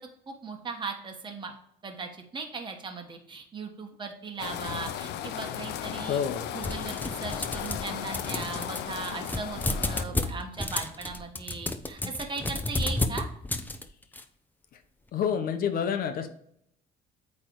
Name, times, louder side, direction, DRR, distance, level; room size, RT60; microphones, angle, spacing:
voice 1, 0.3-1.5 1.8-6.2 6.5-13.3, right 4 dB, 30° right, 3 dB, 1.3 m, -38 dB
sound 1, 4.4-10.0, left 10 dB, 80° left, 0.6 m, -36 dB
voice 2, 6.0-6.5 15.1-16.3, left 7 dB, 60° left, 7 dB, 0.9 m, -28 dB
sound 2, 6.6-7.9 8.1-14.2, left 2 dB, 10° left, 0.7 m, -31 dB
8.4 x 3.3 x 4.6 m, 0.70 s
cardioid pair, 110°, 17 cm